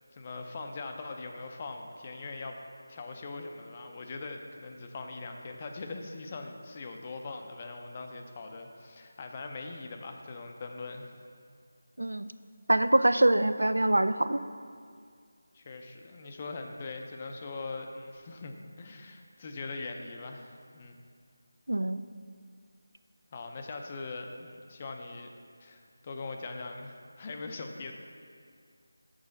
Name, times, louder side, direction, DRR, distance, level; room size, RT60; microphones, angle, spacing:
voice 1, 0.1-2.6 2.9-11.2 15.5-21.0 23.3-25.3 25.6-27.9, left 3 dB, 25° left, 4 dB, 0.5 m, -41 dB
voice 2, 12.7-14.4 21.7-22.0, right 1 dB, 85° right, 12 dB, 0.3 m, -24 dB
6.2 x 4.8 x 5.2 m, 2.2 s
figure-of-eight pair, 170°, 0 cm